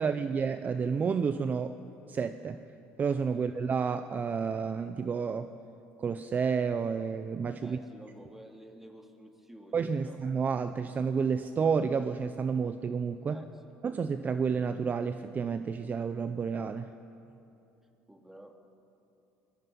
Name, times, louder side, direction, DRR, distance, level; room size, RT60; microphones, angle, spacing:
voice 1, 0.0-1.8 2.1-2.6 3.0-5.5 6.0-7.8 9.7-13.4 13.8-16.9, right 6 dB, 35° right, 10 dB, 0.7 m, -30 dB
voice 2, 7.6-10.2 13.3-13.7 18.1-18.6, right 1 dB, 5° right, 3 dB, 2.3 m, -51 dB
24.5 x 21.0 x 5.5 m, 2.9 s
supercardioid pair, 100°, 5 cm